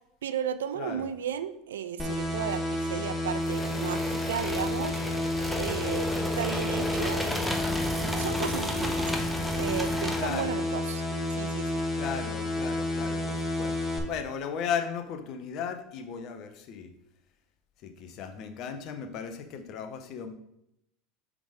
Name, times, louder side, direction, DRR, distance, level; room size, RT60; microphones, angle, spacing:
voice 1, 0.2-5.0 5.6-7.2 8.2-9.1 9.5-11.0 11.3-11.8, right 9 dB, 80° right, 12 dB, 0.4 m, -34 dB
voice 2, 0.8-1.1 10.2-10.6 11.9-13.8 14.1-16.9 17.8-20.3, left 7 dB, 55° left, 7 dB, 0.8 m, -36 dB
sound 1, 2.0-14.0, left 1 dB, 15° left, 1.2 m, -31 dB
sound 2, 3.4-10.5, equal, ahead, 0.8 m, -34 dB
5.2 x 3.7 x 4.9 m, 0.80 s
hypercardioid pair, 80°, 0 cm